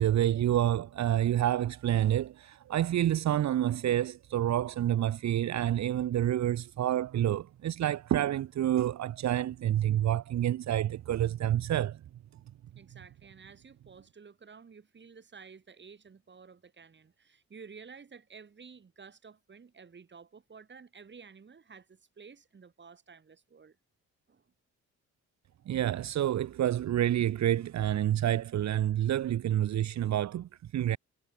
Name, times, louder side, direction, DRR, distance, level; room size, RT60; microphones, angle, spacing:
voice 1, 0.0-12.0 25.7-31.0, right 12 dB, 65° right, 1.3 m, -28 dB
voice 2, 12.7-23.8 24.3-24.5, right 5 dB, 35° right, 5.8 m, -52 dB
cardioid pair, 90°, 30 cm